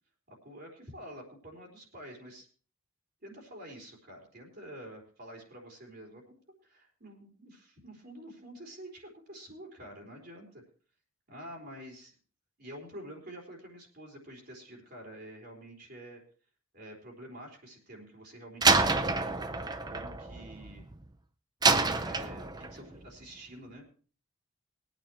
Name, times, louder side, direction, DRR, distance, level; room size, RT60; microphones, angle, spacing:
voice 1, 0.3-2.5 3.2-6.2 6.6-10.6 11.3-12.1 12.6-16.2 16.7-19.2 19.9-20.8 22.0-23.9, equal, 45° right, 0 dB, 4.0 m, -48 dB
Slam, 18.6-21.0 21.6-22.8, right 3 dB, 20° right, 0.6 m, -27 dB
22.0 x 9.2 x 3.1 m, 0.40 s
head